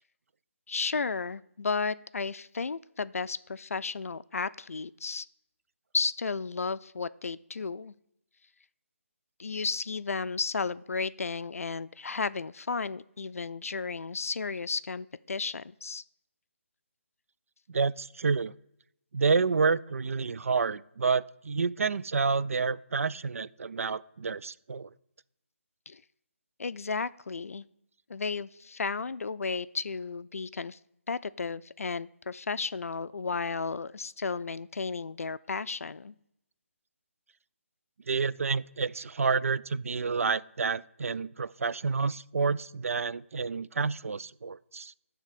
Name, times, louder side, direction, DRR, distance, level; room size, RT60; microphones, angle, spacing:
voice 1, 0.7-5.3 5.9-7.9 9.4-16.0 25.9-26.0 26.6-27.6 28.1-30.8 31.1-36.1, left 4 dB, 80° left, 16 dB, 0.4 m, -33 dB
voice 2, 17.7-18.5 19.1-24.9 38.1-44.9, right 5 dB, 75° right, 17 dB, 0.4 m, -29 dB
10.5 x 3.5 x 6.5 m, 0.79 s
figure-of-eight pair, 150°, 8 cm